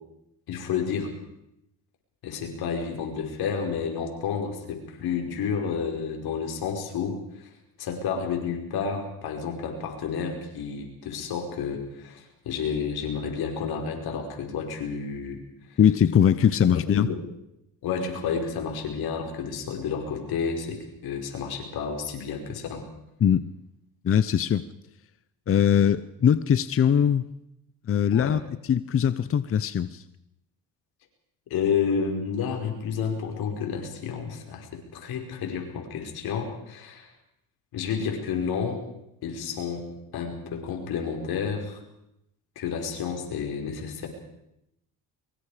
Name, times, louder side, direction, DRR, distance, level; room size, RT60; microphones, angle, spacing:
voice 1, 0.5-1.1 2.2-7.5 7.8-15.4 15.7-15.8 16.9-17.2 17.8-22.8 28.1-28.4 31.5-37.1 37.7-38.8 39.2-39.9 40.1-41.8 42.6-44.1, left 6 dB, 75° left, 3 dB, 5.1 m, -30 dB
voice 2, 15.8-17.1 23.2-23.5 24.0-24.7 25.5-27.2 27.9-28.4 28.7-30.0, left 8 dB, 35° left, 15 dB, 0.7 m, -21 dB
24.0 x 23.0 x 5.0 m, 0.82 s
cardioid pair, 90°, 38 cm